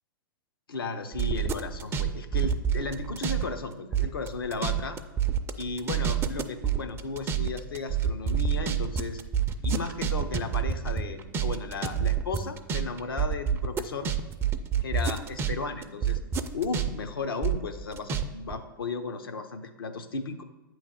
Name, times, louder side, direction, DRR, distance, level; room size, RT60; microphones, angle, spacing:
voice 1, 0.7-5.0 5.6-9.2 9.6-14.1 14.8-16.2 16.5-20.4, left 4 dB, 80° left, 7 dB, 0.7 m, -35 dB
sound 1, 1.1-3.5 3.7-15.5 15.8-18.2 18.5-18.6, right 8 dB, 20° right, 0.5 m, -27 dB
8.5 x 3.2 x 6.3 m, 1.1 s
hypercardioid pair, 105°, 12 cm